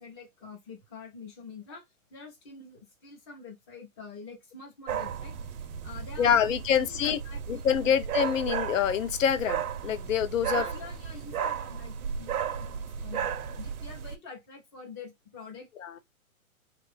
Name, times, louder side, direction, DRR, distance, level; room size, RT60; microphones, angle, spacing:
voice 1, 0.0-1.8 2.1-5.6 5.8-7.9 10.5-13.3 13.6-15.7, left 4 dB, 20° left, 0.7 m, -46 dB
sound 1, 4.9-14.1, right 8 dB, 80° right, 0.7 m, -34 dB
voice 2, 6.2-7.2 7.5-10.6 11.4-11.5 15.8-15.9, left 8 dB, 65° left, 0.7 m, -26 dB
2.9 x 2.5 x 3.3 m
hypercardioid pair, 155°, 43 cm